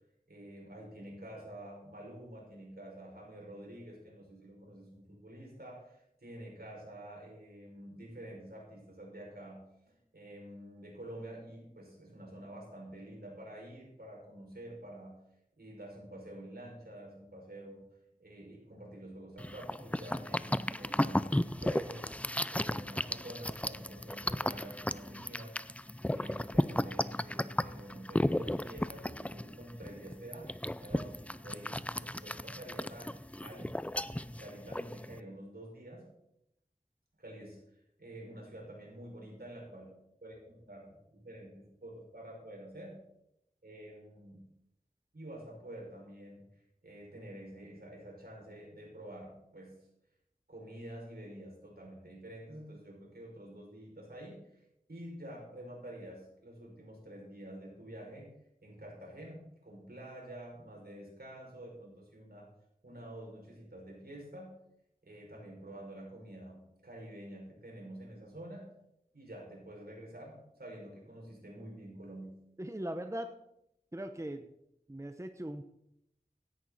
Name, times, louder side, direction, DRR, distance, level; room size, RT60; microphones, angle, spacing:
voice 1, 0.3-15.2 15.6-17.8 18.2-25.6 26.0-30.5 30.8-33.8 34.2-36.1 37.2-43.0 43.6-44.4 45.1-46.4 46.8-49.8 50.5-58.3 58.6-62.5 62.8-64.6 65.0-68.7 69.1-72.4, right 1 dB, 75° right, -2 dB, 6.0 m, -48 dB
sound 1, 19.4-35.2, left 1 dB, 10° left, 0.4 m, -34 dB
voice 2, 72.6-73.3 73.9-74.5 74.9-75.6, right 1 dB, 20° right, 7 dB, 0.9 m, -39 dB
16.5 x 11.0 x 4.2 m, 0.79 s
wide cardioid pair, 50°, 16 cm